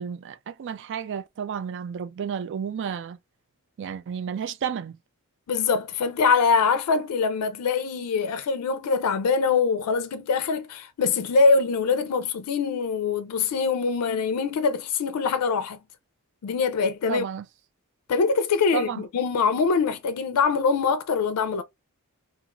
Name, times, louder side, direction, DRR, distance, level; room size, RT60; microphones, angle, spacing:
voice 1, 0.0-3.2 3.8-5.0 17.1-17.4 18.7-19.0, right 7 dB, 55° right, 0.3 m, -32 dB
voice 2, 5.5-15.8 16.4-17.2 18.1-21.6, left 5 dB, 85° left, 0.4 m, -23 dB
2.4 x 2.4 x 2.8 m
head